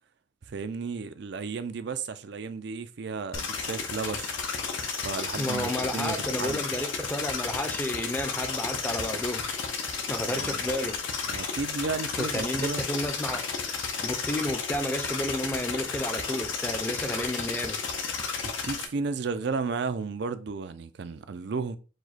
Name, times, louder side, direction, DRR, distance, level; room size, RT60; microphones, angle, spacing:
voice 1, 0.5-4.4 5.0-6.6 10.3-10.6 11.2-12.8 18.4-21.8, right 4 dB, 55° right, 0.4 m, -33 dB
sound 1, 3.3-18.8, left 5 dB, 75° left, 0.7 m, -32 dB
voice 2, 5.4-9.4 10.1-11.0 12.2-13.4 14.0-17.8, left 1 dB, 10° left, 0.5 m, -31 dB
4.9 x 2.2 x 4.1 m
head